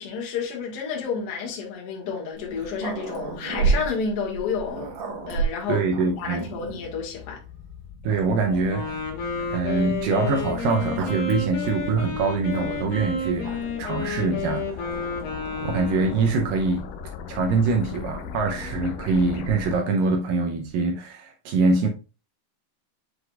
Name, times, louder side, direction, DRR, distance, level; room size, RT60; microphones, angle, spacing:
voice 1, 0.0-4.9 5.3-5.8 6.2-7.4, left 5 dB, 45° left, 2.1 m, -30 dB
Growling, 2.3-6.9 7.6-7.7 8.1-9.1 10.2-13.0 13.4-13.9 14.8-16.6 17.7-20.2, right 4 dB, 60° right, 2.5 m, -33 dB
sound 1, 4.3-19.8, left 7 dB, 85° left, 1.9 m, -40 dB
voice 2, 5.7-6.5 8.0-9.0 9.5-15.0 15.6-16.9 17.3-21.9, right 4 dB, 75° right, 2.1 m, -24 dB
Wind instrument woodwind instrument, 8.7-16.6, left 3 dB, 60° left, 3.2 m, -31 dB
7.8 x 5.0 x 2.4 m
omnidirectional pair, 4.8 m